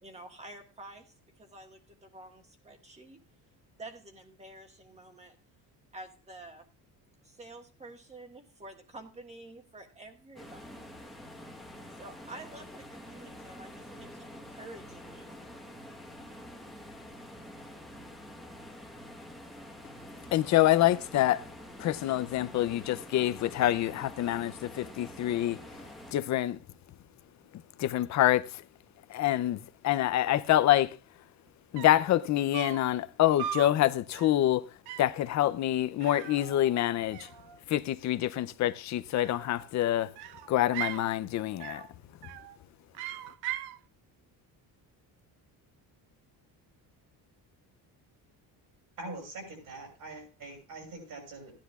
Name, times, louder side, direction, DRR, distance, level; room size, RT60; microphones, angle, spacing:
voice 1, 0.0-3.2 3.8-5.3 5.9-6.7 7.2-10.7 12.0-15.4, right 2 dB, 15° right, 1.6 m, -49 dB
sound 1, 10.4-26.1, equal, ahead, 1.2 m, -47 dB
voice 2, 20.3-21.4 21.8-25.6 26.1-26.6 27.8-28.6 29.1-31.0 31.7-34.7 35.0-37.3 37.7-40.1 40.5-41.8, left 13 dB, 45° left, 0.5 m, -26 dB
sound 2, 31.5-31.6 31.8-32.1 32.5-32.9 33.4-33.8 34.1-34.4 34.9-35.2 36.0-36.9 37.1-37.8 39.1-39.7 40.1-41.1 41.6-41.9 42.2-42.6 42.9-43.8, right 12 dB, 85° right, 0.6 m, -39 dB
voice 3, 49.0-51.5, right 2 dB, 55° right, 6.5 m, -43 dB
16.5 x 10.5 x 2.4 m
cardioid pair, 155°, 39 cm